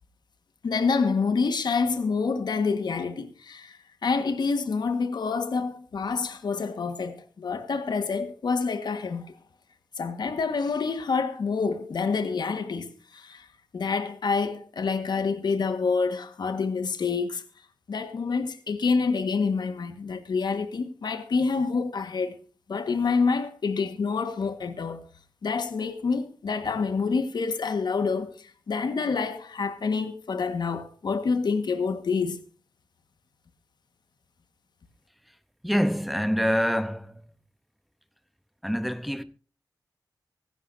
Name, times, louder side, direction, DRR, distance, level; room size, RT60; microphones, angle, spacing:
voice 1, 0.6-9.3 10.0-13.5 13.7-17.4 17.9-22.4 22.7-25.0 25.4-32.4, left 4 dB, 70° left, 1.5 m, -27 dB
voice 2, 35.6-37.3 38.6-39.2, equal, ahead, 0.8 m, -26 dB
24.5 x 11.0 x 2.7 m
wide cardioid pair, 155°, 8 cm